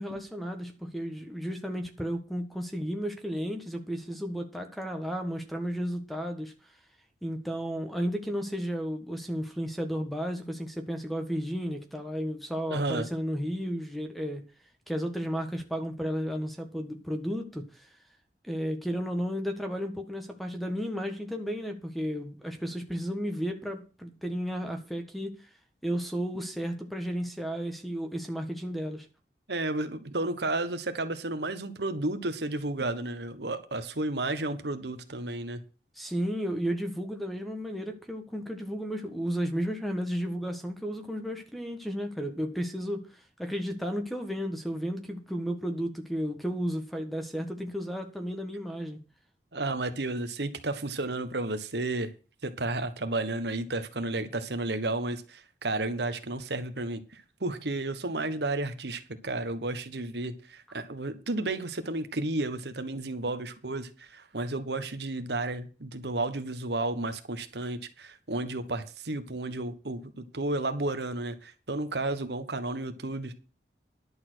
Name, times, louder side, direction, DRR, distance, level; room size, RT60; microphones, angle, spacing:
voice 1, 0.0-6.5 7.2-14.5 14.9-17.9 18.4-25.5 25.8-29.1 35.9-49.0, equal, ahead, 1.5 m, -33 dB
voice 2, 12.7-13.1 29.5-35.6 49.5-52.1 52.4-73.3, right 2 dB, 65° right, 1.4 m, -32 dB
11.0 x 7.0 x 6.3 m
head